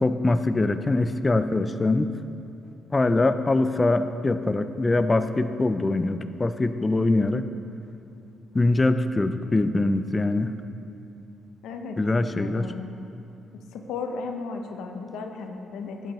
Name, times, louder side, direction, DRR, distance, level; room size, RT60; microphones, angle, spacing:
voice 1, 0.0-2.1 2.9-7.5 8.5-10.5 12.0-12.7 15.8-15.9, left 2 dB, 20° left, 10 dB, 0.4 m, -23 dB
voice 2, 11.6-12.0 12.4-13.0 13.7-16.1, left 4 dB, 85° left, 4 dB, 0.7 m, -35 dB
12.0 x 7.7 x 3.0 m, 2.7 s
cardioid pair, 90°, 0 cm